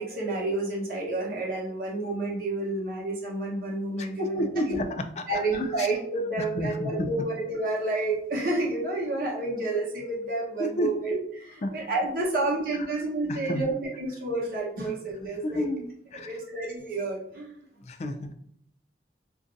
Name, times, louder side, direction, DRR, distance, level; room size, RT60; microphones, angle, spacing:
voice 1, 0.0-4.8 5.3-15.6 16.2-17.6, right 2 dB, 50° right, -3 dB, 0.9 m, -30 dB
voice 2, 4.0-5.0 5.3-5.9 6.4-7.1 10.6-10.9 11.6-11.7 12.9-13.0 13.3-13.6 15.4-16.3 17.8-18.3, left 1 dB, 35° left, 7 dB, 0.3 m, -31 dB
2.6 x 2.3 x 3.8 m, 0.69 s
head